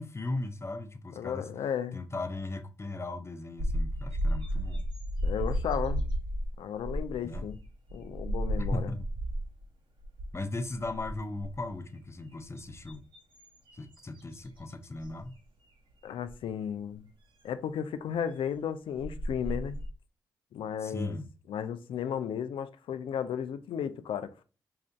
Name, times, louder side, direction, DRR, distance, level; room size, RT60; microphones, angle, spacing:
voice 1, 0.0-1.5 1.9-4.8 7.2-7.5 8.6-9.1 10.3-13.0 13.7-15.3 20.8-21.3, left 2 dB, 30° left, 0.7 m, -37 dB
voice 2, 1.2-2.0 5.2-6.1 6.6-7.6 7.9-8.9 16.0-17.1 17.4-19.8 20.5-21.2 21.5-24.4, left 8 dB, 75° left, 0.4 m, -34 dB
sound 1, 3.6-9.6 10.0-10.4 10.7-11.7 12.3-14.6 15.0-15.2 16.3-16.4 18.5-18.6 19.0-19.9, equal, 65° right, 1.0 m, -33 dB
4.8 x 2.6 x 2.2 m
supercardioid pair, 40°, 9 cm